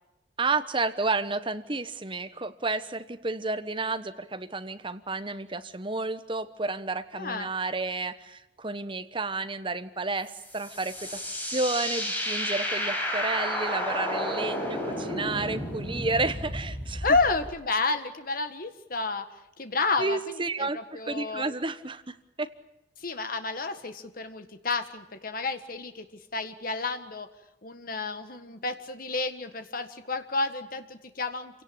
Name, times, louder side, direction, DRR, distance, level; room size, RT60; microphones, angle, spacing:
voice 1, 0.4-11.2 11.5-17.0 20.0-22.5, right 3 dB, 25° right, 10 dB, 1.1 m, -31 dB
voice 2, 7.1-7.5 17.0-21.4 23.0-26.0 26.3-27.3 27.6-31.6, left 3 dB, 50° left, 8 dB, 1.7 m, -30 dB
sound 1, 10.3-17.5, equal, 10° left, 5.0 m, -32 dB
26.5 x 17.5 x 8.8 m, 0.90 s
head